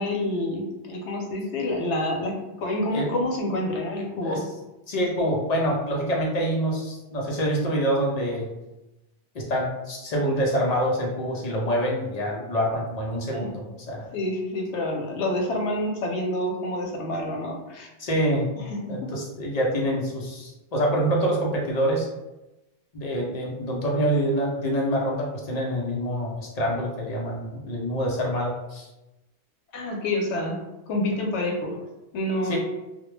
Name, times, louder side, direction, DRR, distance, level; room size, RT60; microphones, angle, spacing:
voice 1, 0.0-4.4 13.3-13.5 14.1-17.9 18.6-19.1 29.7-31.8 32.1-32.6, left 1 dB, 85° left, 1 dB, 0.9 m, -28 dB
voice 2, 4.9-8.5 9.3-14.1 18.0-18.5 18.9-22.1 22.9-28.9 32.4-32.6, equal, 50° left, -2 dB, 0.5 m, -26 dB
2.2 x 2.1 x 3.1 m, 0.98 s
omnidirectional pair, 1.1 m